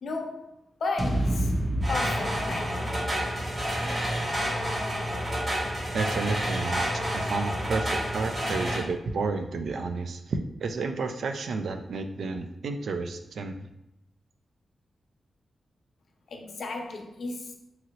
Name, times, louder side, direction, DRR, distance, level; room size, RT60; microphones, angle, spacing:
voice 1, 0.0-0.5 0.8-1.5 1.9-2.8 16.3-17.5, left 3 dB, 70° left, 3 dB, 0.5 m, -34 dB
sound 1, 1.0-5.2, right 1 dB, 15° right, 0.6 m, -31 dB
sound 2, 1.8-8.8, equal, 40° right, 1.4 m, -29 dB
voice 2, 5.9-13.7, right 4 dB, 75° right, 6 dB, 0.3 m, -31 dB
2.9 x 2.6 x 2.8 m, 0.83 s
cardioid pair, 95°, 0 cm